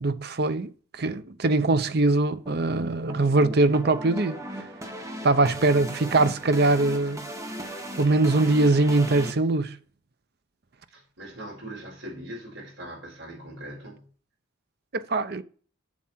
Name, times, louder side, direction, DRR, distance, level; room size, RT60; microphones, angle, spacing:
voice 1, 0.0-4.4 5.2-7.2 8.0-9.8 14.9-15.4, right 2 dB, 50° right, 0.7 m, -22 dB
sound 1, 2.5-9.3, equal, 15° right, 1.2 m, -37 dB
voice 2, 5.2-5.6 10.9-14.1, right 1 dB, 65° right, 4.6 m, -41 dB
7.6 x 7.4 x 4.4 m
head